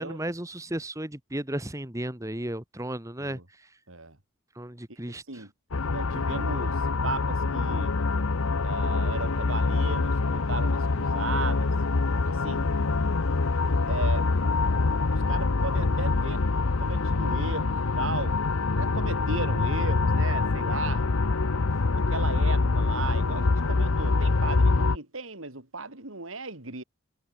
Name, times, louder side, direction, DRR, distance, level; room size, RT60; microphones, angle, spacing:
voice 1, 0.0-3.7 4.5-5.4, right 1 dB, 15° right, 1.6 m, -34 dB
voice 2, 4.9-5.5 5.9-8.0 8.6-11.7 12.3-12.7 13.9-14.3 15.3-16.4 16.8-18.4 18.8-21.1 21.9-26.8, right 3 dB, 75° right, 3.9 m, -36 dB
sound 1, 5.7-25.0, left 3 dB, 90° left, 0.9 m, -25 dB
head